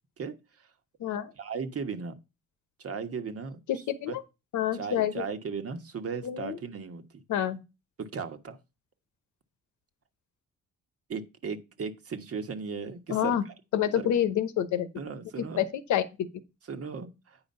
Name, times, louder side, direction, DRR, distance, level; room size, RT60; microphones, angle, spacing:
voice 1, 0.2-0.7 1.4-2.2 2.8-4.2 4.7-7.2 8.0-8.6 11.1-13.5 13.9-14.1 14.9-15.7 16.7-17.4, right 5 dB, 55° right, 1.3 m, -37 dB
voice 2, 1.0-1.3 3.7-4.2 4.5-5.2 6.2-6.6 7.3-7.6 13.1-13.4 13.7-14.9 15.6-16.0, left 10 dB, 85° left, 0.9 m, -27 dB
9.0 x 4.9 x 5.4 m
cardioid pair, 85°, 29 cm